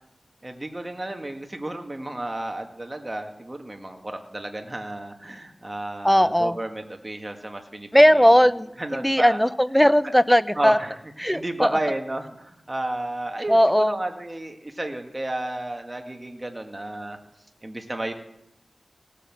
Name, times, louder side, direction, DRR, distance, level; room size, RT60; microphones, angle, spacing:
voice 1, 0.4-8.3 8.8-9.4 10.0-10.1 10.6-17.2 17.6-18.1, right 1 dB, 30° right, 4 dB, 1.9 m, -32 dB
voice 2, 6.0-6.6 7.9-10.8 11.2-11.7 13.5-14.0, equal, 5° left, 15 dB, 0.6 m, -18 dB
18.0 x 8.5 x 7.4 m, 0.80 s
wide cardioid pair, 50°, 0 cm